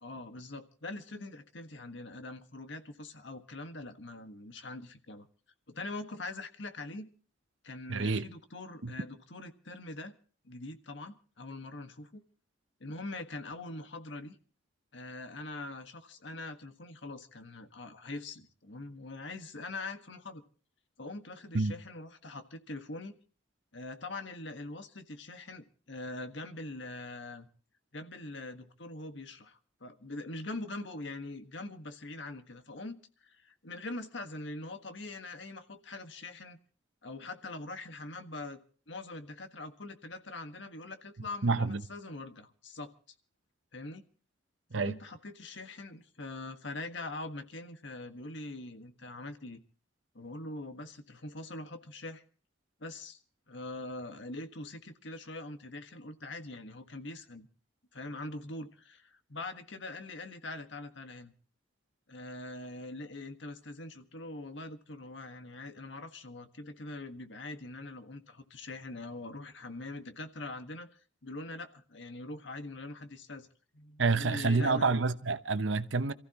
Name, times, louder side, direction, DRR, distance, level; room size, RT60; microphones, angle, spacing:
voice 1, 0.0-5.3 5.7-7.1 7.6-10.1 10.4-12.2 12.8-14.4 14.9-20.4 21.0-23.1 23.7-27.5 27.9-36.6 37.0-38.6 38.9-42.9 43.7-44.0 44.7-49.6 50.1-52.2 52.8-53.2 53.5-57.5 57.9-61.3 62.1-73.5 73.7-74.9, left 2 dB, 75° left, 1.5 m, -43 dB
voice 2, 7.9-8.3 8.8-8.9 21.5-21.7 41.4-41.8 44.7-44.9 74.0-76.1, right 3 dB, 85° right, 0.9 m, -28 dB
27.5 x 15.0 x 3.0 m
head